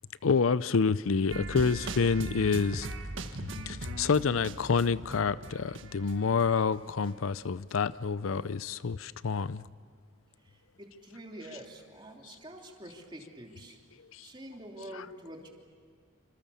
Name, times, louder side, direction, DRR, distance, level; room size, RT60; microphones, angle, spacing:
voice 1, 0.2-2.9 3.7-9.6 14.1-14.3, left 5 dB, 90° left, 17 dB, 0.6 m, -28 dB
sound 1, 1.3-7.1 7.4-7.5, right 2 dB, 75° right, 1.5 m, -40 dB
voice 2, 10.4-13.8 14.2-15.5, right 1 dB, 25° right, 1 dB, 3.0 m, -46 dB
27.0 x 26.0 x 7.0 m, 2.1 s
head